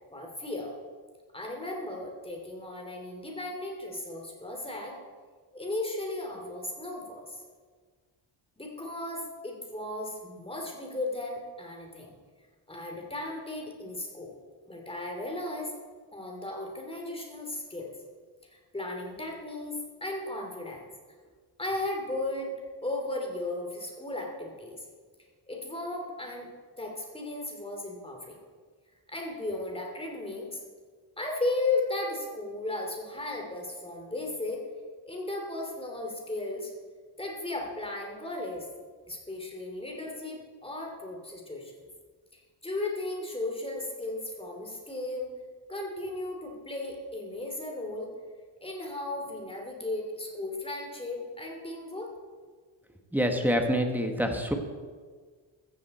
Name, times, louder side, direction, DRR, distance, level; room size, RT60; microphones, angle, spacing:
voice 1, 0.1-0.8 1.3-5.0 5.5-7.4 8.6-12.1 12.7-14.3 14.7-15.7 16.1-17.9 18.5-20.8 21.6-22.5 22.8-24.8 25.5-26.5 26.8-28.4 29.1-30.6 31.2-34.6 35.0-36.7 37.2-38.7 39.1-41.7 42.3-45.3 45.7-48.1 48.6-52.1, left 2 dB, 10° left, 1 dB, 3.0 m, -35 dB
voice 2, 53.1-54.5, equal, 5° right, 4 dB, 1.5 m, -26 dB
15.0 x 14.5 x 4.4 m, 1.5 s
wide cardioid pair, 140°, 48 cm